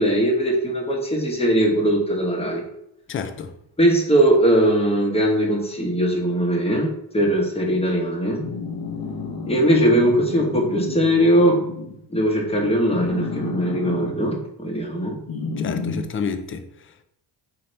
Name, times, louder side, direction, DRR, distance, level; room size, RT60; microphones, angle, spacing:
voice 1, 0.0-2.6 3.8-8.5 9.5-11.6 12.1-15.2, right 1 dB, 15° left, 1.0 m, -20 dB
voice 2, 3.1-3.6 15.6-17.0, left 6 dB, 30° left, 0.4 m, -30 dB
sound 1, 8.4-12.0 12.9-14.1 15.3-16.0, left 4 dB, 50° left, 0.9 m, -31 dB
4.1 x 2.8 x 3.2 m
cardioid pair, 85°, 47 cm